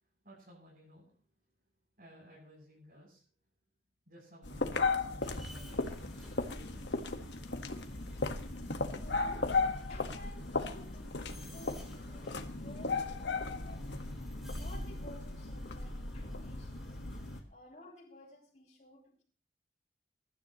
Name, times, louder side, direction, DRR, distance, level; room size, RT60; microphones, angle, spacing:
voice 1, 0.2-1.2 2.0-3.2 4.1-7.1 17.4-17.5, equal, 50° right, 7.7 m, -57 dB
sound 1, 4.4-17.4, left 3 dB, 85° left, 1.5 m, -36 dB
sound 2, 5.2-17.4, left 1 dB, ahead, 3.9 m, -58 dB
voice 2, 9.0-13.9 14.5-17.0 17.5-19.2, left 1 dB, 45° left, 6.9 m, -54 dB
22.5 x 13.0 x 3.1 m
head